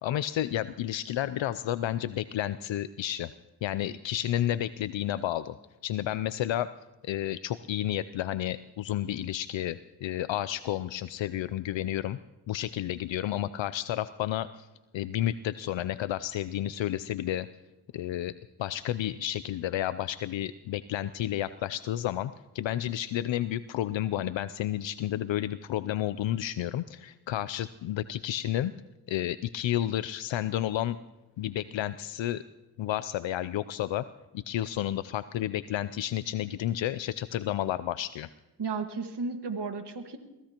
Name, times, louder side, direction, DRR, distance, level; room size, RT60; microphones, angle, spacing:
voice 1, 0.0-3.3 3.6-5.6 5.8-6.7 7.0-12.2 12.5-14.7 14.9-17.5 17.9-18.3 18.6-28.7 29.1-31.0 31.4-32.4 32.8-34.1 34.3-38.3, left 12 dB, 75° left, 14 dB, 0.5 m, -31 dB
voice 2, 38.6-40.2, right 4 dB, 60° right, 6 dB, 1.7 m, -33 dB
23.5 x 18.0 x 2.9 m, 1.0 s
cardioid pair, 45°, 45 cm